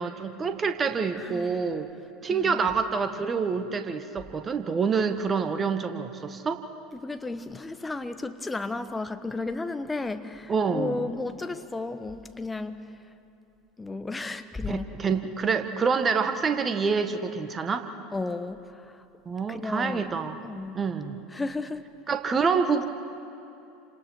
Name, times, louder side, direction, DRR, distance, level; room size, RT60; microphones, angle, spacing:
voice 1, 0.0-1.9 2.2-6.6 10.5-11.0 14.7-17.9 19.2-20.4 20.7-21.2 22.1-22.8, right 5 dB, 25° right, 1.7 m, -27 dB
voice 2, 1.2-1.7 2.3-2.7 6.9-12.9 13.8-14.9 18.1-19.0 19.5-20.1 20.4-20.8 21.3-21.8, left 3 dB, 15° left, 1.3 m, -34 dB
30.0 x 27.0 x 4.7 m
figure-of-eight pair, 75°, 0 cm